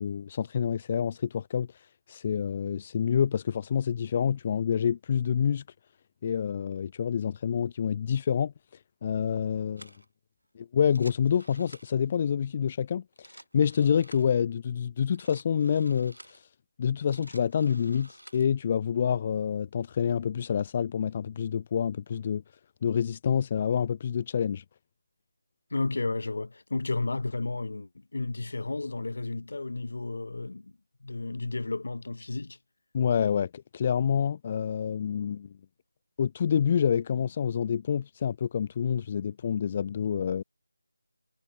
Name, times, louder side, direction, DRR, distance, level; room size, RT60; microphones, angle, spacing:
voice 1, 0.0-5.6 6.2-9.9 10.5-16.5 16.8-22.4 22.8-24.6 32.9-35.5 36.2-40.4, left 8 dB, 25° left, 0.6 m, -27 dB
sound 1, 9.8-10.1 10.8-12.1 13.0-14.4 15.0-16.4 16.9-18.5, right 1 dB, 80° right, 4.4 m, -52 dB
voice 2, 25.7-30.7 31.0-32.6, left 3 dB, 55° left, 1.2 m, -32 dB
figure-of-eight pair, 160°, 0 cm